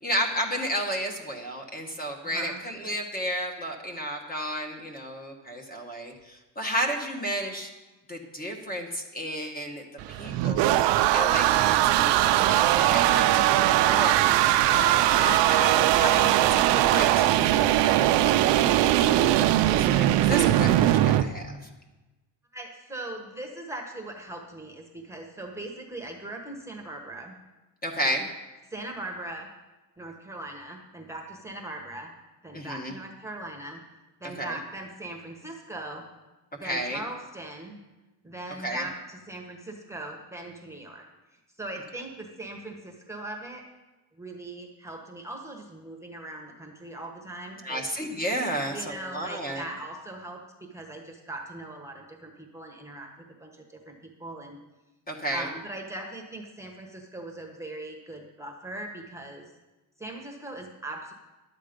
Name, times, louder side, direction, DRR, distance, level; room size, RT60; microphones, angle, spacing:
voice 1, 0.0-7.7 8.1-10.7 11.1-14.2 14.7-18.4 19.0-21.6 27.8-28.3 32.5-32.9 34.4-34.6 36.6-37.0 38.6-38.8 47.6-49.6 55.1-55.5, equal, 20° left, 2 dB, 1.2 m, -32 dB
sound 1, 10.0-21.2, right 13 dB, 85° right, 0.6 m, -21 dB
voice 2, 22.5-27.4 28.7-29.5 30.0-32.1 32.4-33.8 34.2-36.0 36.5-37.8 38.2-41.1 41.6-43.6 44.2-47.8 48.6-53.1 53.4-54.6 55.3-59.5 60.0-61.1, right 2 dB, 5° right, 1 dB, 1.1 m, -40 dB
11.5 x 8.4 x 5.2 m, 1.1 s
cardioid pair, 145°, 41 cm